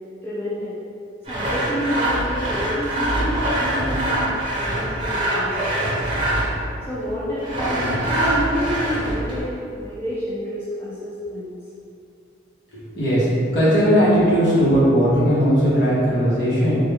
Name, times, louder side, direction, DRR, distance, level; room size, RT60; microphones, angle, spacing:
voice 1, 0.2-0.7 1.3-6.1 6.9-11.5, equal, 10° left, -11 dB, 0.5 m, -29 dB
Sawing, 1.3-6.7 7.4-9.4, right 1 dB, 25° right, 0.8 m, -23 dB
voice 2, 12.7-16.8, equal, 55° left, -9 dB, 1.2 m, -18 dB
3.5 x 2.5 x 3.5 m, 2.5 s
head